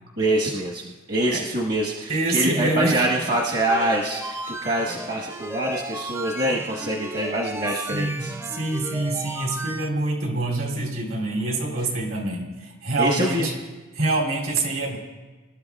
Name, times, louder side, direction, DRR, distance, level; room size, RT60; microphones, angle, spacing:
voice 1, 0.2-8.4 13.0-13.5, right 1 dB, 50° right, -4 dB, 1.3 m, -25 dB
voice 2, 2.1-3.0 7.9-13.5 13.9-15.0, right 2 dB, 70° right, 0 dB, 3.0 m, -26 dB
sound 1, 3.0-9.9, right 1 dB, 10° right, 0.5 m, -35 dB
26.0 x 12.5 x 2.4 m, 1.3 s
head